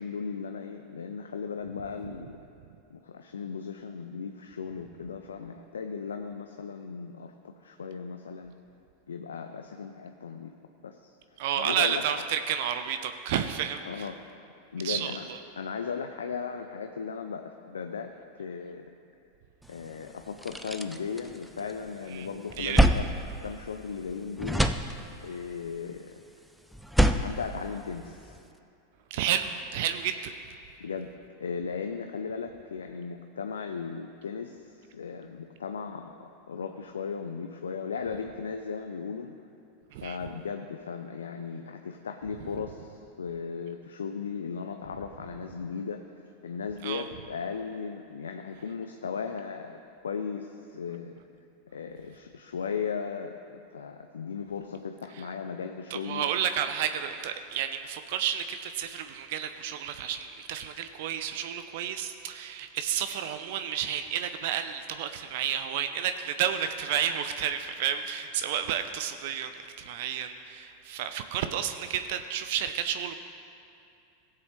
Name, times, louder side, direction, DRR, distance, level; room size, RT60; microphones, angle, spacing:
voice 1, 0.0-2.4 2.9-8.5 9.1-10.5 10.8-11.1 11.5-12.0 13.9-14.2 14.7-15.2 15.6-18.1 18.4-18.9 19.7-23.1 23.4-24.7 25.2-26.1 27.2-28.4 30.8-31.1 31.4-39.3 40.0-49.8 50.0-51.2 51.7-56.3, left 6 dB, 75° left, 6 dB, 0.5 m, -36 dB
voice 2, 11.4-14.1 14.8-15.4 22.1-22.3 22.6-22.8 29.1-30.3 39.9-40.2 46.8-47.0 55.9-73.1, right 9 dB, 60° right, 9 dB, 0.5 m, -31 dB
sound 1, 19.8-19.9 20.2-21.9 22.3-24.1 24.4-25.4 26.7-28.4, right 1 dB, ahead, 0.5 m, -27 dB
17.0 x 7.6 x 3.1 m, 2.6 s
figure-of-eight pair, 90°, 0 cm